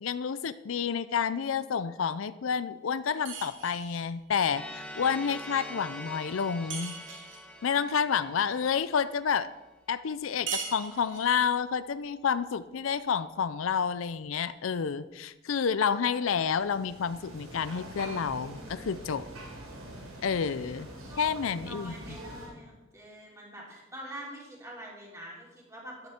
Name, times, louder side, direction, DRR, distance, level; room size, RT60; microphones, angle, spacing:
voice 1, 0.0-7.0 7.6-9.5 9.9-19.2 20.2-20.9 21.2-21.9, left 6 dB, 75° left, 14 dB, 0.5 m, -29 dB
sound 1, 3.3-4.1 6.7-7.5 10.5-11.4, right 6 dB, 65° right, 2.5 m, -38 dB
sound 2, 4.4-9.3, left 1 dB, 5° left, 1.2 m, -44 dB
sound 3, 16.3-22.5, right 1 dB, 90° right, 3.7 m, -44 dB
voice 2, 18.8-19.2 20.9-26.1, right 1 dB, 15° right, -3 dB, 3.4 m, -46 dB
14.0 x 11.5 x 4.4 m, 1.1 s
head